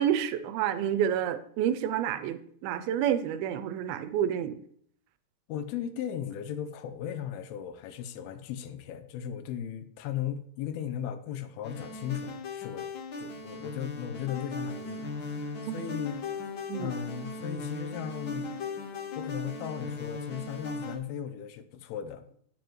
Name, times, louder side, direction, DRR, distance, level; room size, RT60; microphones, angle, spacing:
voice 1, 0.0-4.6 15.7-15.8 16.7-16.9, right 9 dB, 85° right, 11 dB, 2.4 m, -29 dB
voice 2, 5.5-12.9 13.1-16.2 16.8-18.6 19.2-22.2, left 9 dB, 85° left, 10 dB, 2.6 m, -37 dB
sound 1, 11.6-21.0, left 3 dB, 70° left, 1.2 m, -38 dB
9.3 x 9.2 x 3.1 m, 0.63 s
omnidirectional pair, 4.4 m